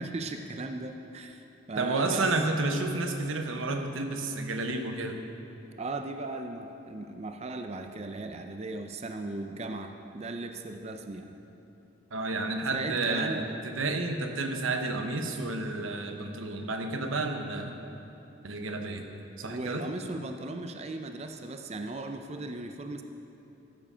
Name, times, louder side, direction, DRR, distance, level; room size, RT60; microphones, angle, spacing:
voice 1, 0.0-2.3 5.8-11.4 12.7-13.4 19.4-23.0, right 2 dB, 35° right, 6 dB, 0.5 m, -37 dB
voice 2, 1.8-5.2 12.1-17.8 18.4-19.0 19.4-19.8, right 2 dB, 90° right, 5 dB, 1.0 m, -31 dB
14.0 x 7.4 x 5.6 m, 2.9 s
head